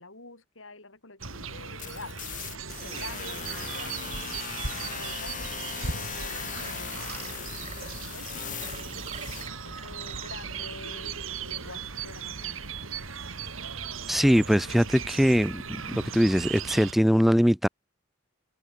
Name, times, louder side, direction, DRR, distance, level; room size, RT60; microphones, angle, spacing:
voice 1, 0.0-2.2 2.8-4.4 4.8-9.1 9.6-12.6, left 2 dB, 80° left, 7.0 m, -47 dB
sound 1, 1.2-16.9, right 5 dB, 90° right, 3.9 m, -37 dB
sound 2, 1.8-9.5, left 8 dB, 40° left, 3.5 m, -39 dB
sound 3, 2.8-10.7, right 5 dB, 30° right, 7.9 m, -47 dB
voice 2, 14.1-15.8 16.1-17.7, equal, ahead, 0.4 m, -22 dB
head